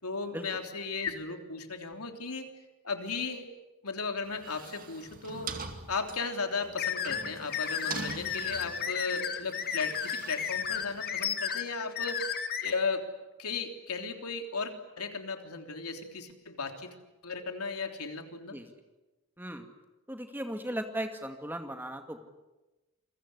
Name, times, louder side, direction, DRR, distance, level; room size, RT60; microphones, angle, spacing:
voice 1, 0.0-2.5 2.8-3.5 3.8-5.6 5.9-13.1 13.4-16.9 17.2-18.6, left 4 dB, 90° left, 5 dB, 3.4 m, -35 dB
sound 1, 4.2-11.3, right 4 dB, 40° right, 2.4 m, -44 dB
sound 2, 6.8-12.7, left 8 dB, 45° left, 1.9 m, -33 dB
voice 2, 20.1-22.2, right 1 dB, 10° right, 5 dB, 2.2 m, -37 dB
28.5 x 23.0 x 8.2 m, 1.1 s
head